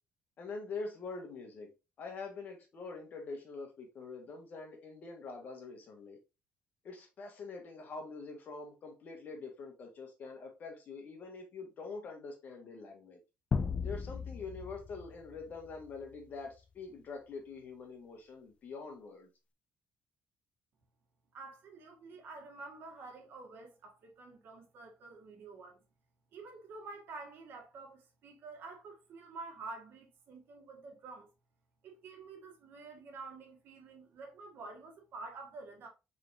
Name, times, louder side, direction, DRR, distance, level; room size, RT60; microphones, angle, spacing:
voice 1, 0.4-1.7 2.0-6.2 6.8-13.2 13.8-19.3, left 4 dB, 50° left, 1.5 m, -45 dB
sound 1, 13.5-16.1, left 5 dB, 30° left, 0.4 m, -37 dB
voice 2, 21.3-25.8 26.3-31.3 31.8-35.9, right 3 dB, 65° right, 1.6 m, -49 dB
4.6 x 4.0 x 2.6 m
cardioid pair, 130°, 4 cm